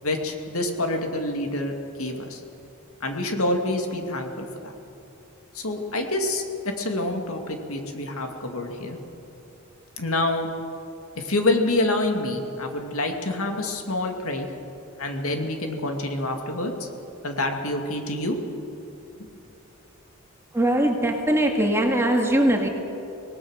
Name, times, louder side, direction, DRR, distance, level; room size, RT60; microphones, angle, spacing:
voice 1, 0.0-2.4 3.0-4.7 5.5-9.0 10.0-10.5 11.2-14.5 15.0-16.9 17.2-18.4, left 2 dB, 70° left, 3 dB, 2.4 m, -27 dB
voice 2, 20.5-22.7, right 1 dB, 10° right, 2 dB, 2.1 m, -21 dB
25.5 x 18.5 x 6.5 m, 2.8 s
head